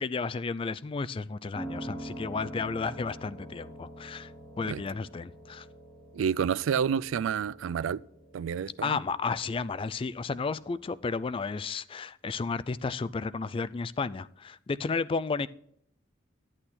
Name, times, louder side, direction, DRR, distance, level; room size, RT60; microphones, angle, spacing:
voice 1, 0.0-4.3 4.6-5.7 8.8-15.5, left 4 dB, 25° left, 0.3 m, -32 dB
Piano, 1.5-11.7, right 1 dB, 5° left, 2.6 m, -46 dB
voice 2, 6.1-8.0 8.3-9.0, right 7 dB, 80° right, 0.3 m, -29 dB
11.5 x 8.9 x 4.3 m
head